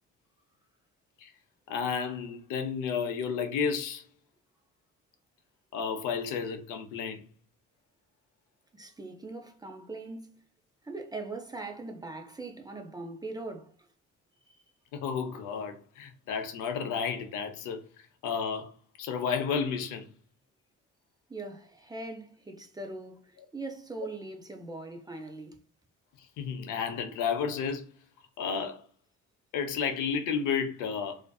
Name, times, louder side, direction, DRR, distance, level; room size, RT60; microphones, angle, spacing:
voice 1, 1.7-4.0 5.7-7.2 14.9-17.8 18.2-18.7 19.0-20.1 26.4-27.9 28.4-28.8 29.5-31.2, left 6 dB, 90° left, 0.5 m, -32 dB
voice 2, 8.7-10.4 10.8-13.7 14.5-14.6 21.3-25.6, right 2 dB, 15° right, 0.4 m, -41 dB
2.5 x 2.4 x 2.2 m
cardioid pair, 90°, 30 cm